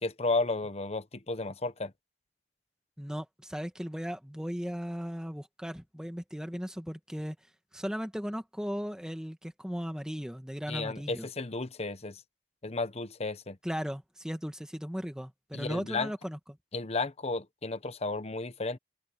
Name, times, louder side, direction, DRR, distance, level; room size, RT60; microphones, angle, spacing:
voice 1, 0.0-1.9 10.7-12.2 12.6-13.6 15.5-16.1 16.7-18.8, left 3 dB, 35° left, 1.1 m, -33 dB
voice 2, 3.0-7.4 7.7-11.3 13.6-16.4, equal, 5° right, 1.8 m, -37 dB
open air
head